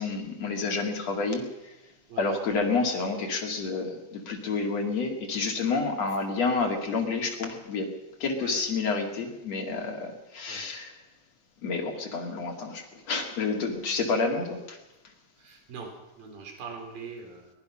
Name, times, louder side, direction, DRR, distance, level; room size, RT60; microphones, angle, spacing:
voice 1, 0.0-1.4 2.2-7.9 8.2-10.9 11.6-14.8, left 4 dB, 40° left, 2 dB, 2.7 m, -29 dB
voice 2, 15.4-15.9 16.2-17.5, right 5 dB, 45° right, 3 dB, 5.5 m, -42 dB
23.0 x 21.0 x 5.8 m, 1.0 s
omnidirectional pair, 5.8 m